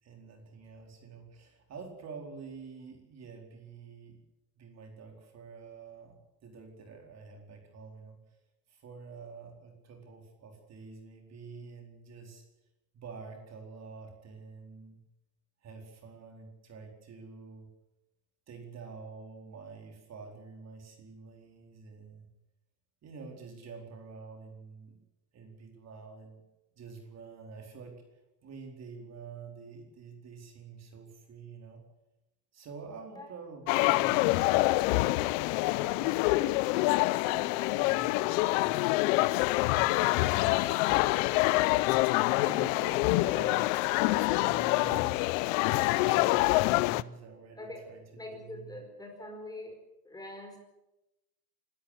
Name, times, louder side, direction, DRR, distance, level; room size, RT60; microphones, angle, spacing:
voice 1, 0.0-4.2 4.6-8.2 8.7-12.4 12.9-15.0 15.6-17.7 18.5-22.3 23.0-25.0 25.3-26.4 26.8-28.0 28.4-31.8 32.5-34.4 35.6-38.7 39.6-40.7 41.6-42.0 42.4-43.6 44.3-45.3 45.9-48.0 48.3-48.7, right 5 dB, 30° right, 2 dB, 4.4 m, -48 dB
sound 1, 33.7-47.0, left 20 dB, 50° left, 0.7 m, -26 dB
voice 2, 47.5-47.8 48.2-50.6, left 1 dB, 10° left, 3 dB, 4.8 m, -45 dB
25.5 x 13.5 x 8.2 m, 0.96 s
supercardioid pair, 125°, 50 cm